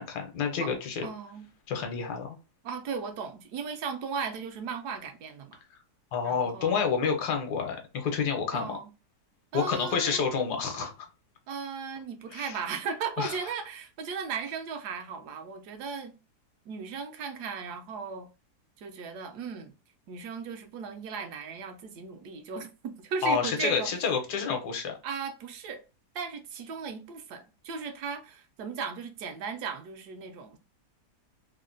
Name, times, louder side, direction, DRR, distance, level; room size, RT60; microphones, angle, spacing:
voice 1, 0.0-1.1 1.7-2.4 6.1-8.8 9.5-10.9 12.3-12.6 13.2-13.4 23.2-25.0, left 6 dB, 80° left, 1.3 m, -29 dB
voice 2, 1.0-1.5 2.6-5.6 6.2-6.9 8.5-8.9 9.5-10.2 11.5-16.1 16.7-18.3 18.8-19.7 20.1-23.9 25.0-25.8 26.1-30.6, right 5 dB, 75° right, 1.1 m, -36 dB
3.2 x 2.1 x 2.4 m
omnidirectional pair, 1.8 m